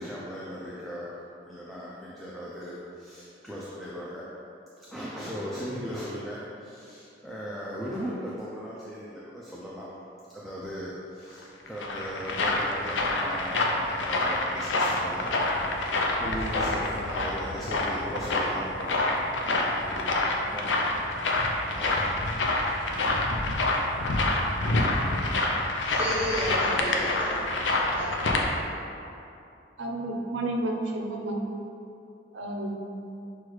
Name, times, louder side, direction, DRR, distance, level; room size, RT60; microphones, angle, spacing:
voice 1, 0.0-4.2 4.8-9.9 10.3-15.3 16.2-18.6 19.8-20.1 20.5-20.9 21.8-22.2 23.6-25.1, equal, ahead, -7 dB, 0.3 m, -38 dB
sound 1, 11.4-28.4, left 2 dB, 75° left, 0.4 m, -27 dB
voice 2, 25.8-27.4 27.9-28.6, equal, 30° right, -7 dB, 0.7 m, -32 dB
voice 3, 29.8-31.5 32.3-33.2, right 1 dB, 75° right, 1 dB, 0.5 m, -31 dB
6.1 x 2.3 x 3.0 m, 2.7 s
head